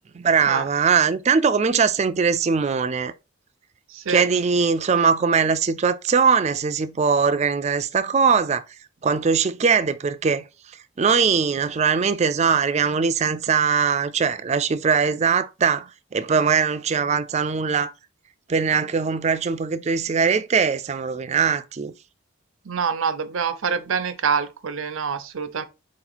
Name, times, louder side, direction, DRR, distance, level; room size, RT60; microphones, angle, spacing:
voice 1, 0.1-3.1 4.1-8.6 9.0-10.4 11.0-17.9 18.5-21.9, right 5 dB, 30° right, 0.3 m, -21 dB
voice 2, 3.9-4.2 22.7-25.6, right 6 dB, 70° right, 0.6 m, -25 dB
4.5 x 2.9 x 3.9 m
head